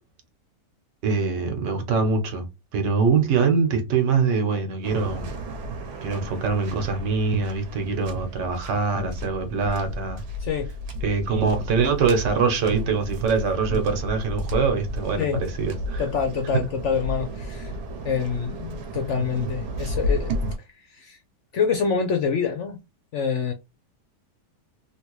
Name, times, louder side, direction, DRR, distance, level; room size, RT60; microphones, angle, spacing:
voice 1, 1.0-2.5 2.7-5.3 6.0-10.2 11.0-16.0, right 5 dB, 90° right, 1.6 m, -23 dB
Waves surf, 4.8-20.6, equal, 70° right, 1.3 m, -33 dB
voice 2, 10.4-10.7 13.7-13.8 15.2-15.4 16.0-17.7 18.0-20.5 20.8-21.2 21.5-22.8 23.1-23.5, left 6 dB, 65° left, 0.7 m, -26 dB
3.3 x 2.8 x 3.0 m
omnidirectional pair, 1.8 m